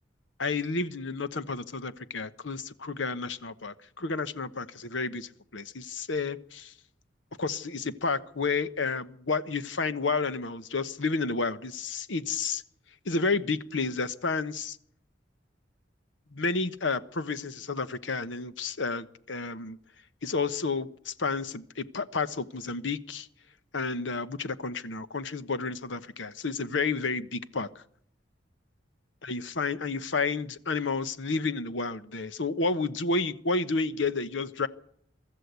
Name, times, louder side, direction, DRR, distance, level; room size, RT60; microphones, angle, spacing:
voice 1, 0.4-6.7 7.4-12.6 13.0-14.8 16.3-19.8 20.2-23.3 23.7-27.8 29.2-34.7, left 4 dB, 80° left, 1.1 m, -31 dB
24.0 x 13.5 x 8.2 m
head